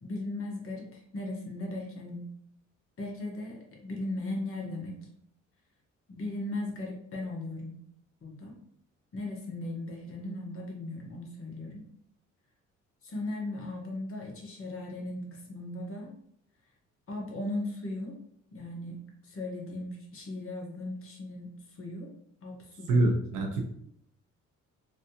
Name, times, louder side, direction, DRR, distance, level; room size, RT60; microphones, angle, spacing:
voice 1, 0.0-2.3 3.0-5.0 6.1-7.8 8.2-8.6 9.1-11.8 13.0-16.1 17.1-18.2 18.5-22.1 22.4-23.1, left 2 dB, 45° left, 0 dB, 1.1 m, -37 dB
voice 2, 22.9-23.6, right 2 dB, 90° right, 2 dB, 0.8 m, -25 dB
3.1 x 2.7 x 2.7 m, 0.69 s
cardioid pair, 90°, 30 cm